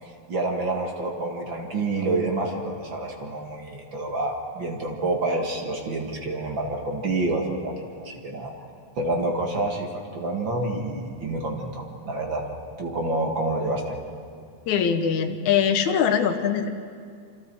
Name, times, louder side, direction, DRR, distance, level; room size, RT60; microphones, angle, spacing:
voice 1, 0.0-8.6 9.0-12.5 12.8-14.0, right 2 dB, 45° right, 1 dB, 2.4 m, -28 dB
voice 2, 14.7-16.7, left 7 dB, 75° left, 8 dB, 2.4 m, -22 dB
27.5 x 26.0 x 4.7 m, 2.2 s
omnidirectional pair, 3.4 m